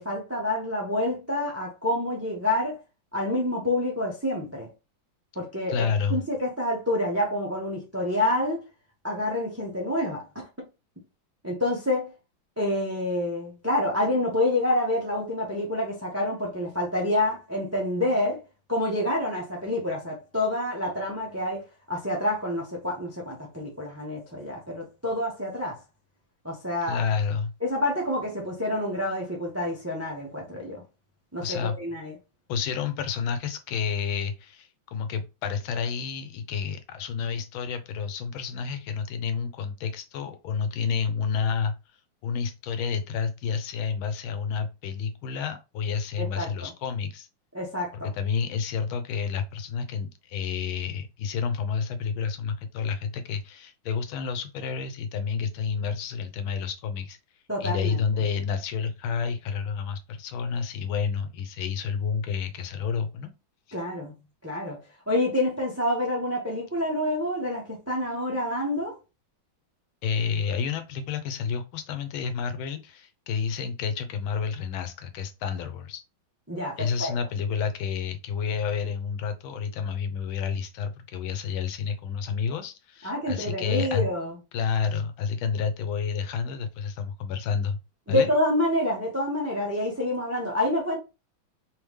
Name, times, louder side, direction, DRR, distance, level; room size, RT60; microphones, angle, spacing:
voice 1, 0.0-2.8 3.1-4.7 5.3-8.6 9.0-10.4 11.4-12.1 12.6-18.4 18.7-25.8 26.4-27.0 27.6-30.8 31.3-32.1 46.2-46.7 47.5-48.1 57.5-58.0 63.7-64.1 64.4-64.8 65.1-68.9 76.5-77.1 83.0-84.3 88.1-91.0, left 1 dB, 15° right, 0.5 m, -28 dB
voice 2, 5.7-6.2 26.9-27.5 31.4-31.8 32.5-41.7 42.2-47.3 48.1-57.2 57.6-63.3 70.0-76.0 76.8-84.1 84.5-87.8 88.1-88.3, left 6 dB, 90° left, 1.5 m, -30 dB
3.5 x 3.4 x 3.1 m
omnidirectional pair, 2.2 m